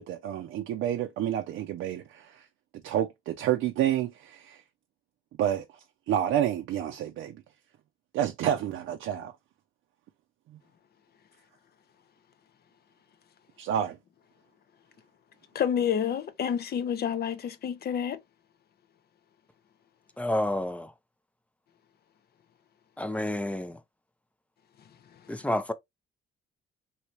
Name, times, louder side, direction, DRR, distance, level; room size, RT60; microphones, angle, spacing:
voice 1, 0.0-2.4 2.8-4.6 5.4-5.6 6.1-7.4 8.1-9.3 13.6-14.0, right 10 dB, 80° right, 0.5 m, -29 dB
voice 2, 15.5-18.2 25.2-25.4, left 8 dB, 55° left, 0.6 m, -29 dB
voice 3, 20.2-20.9 23.0-23.8 25.3-25.7, left 1 dB, 5° left, 0.4 m, -29 dB
3.1 x 2.8 x 2.9 m
cardioid pair, 90°, 20 cm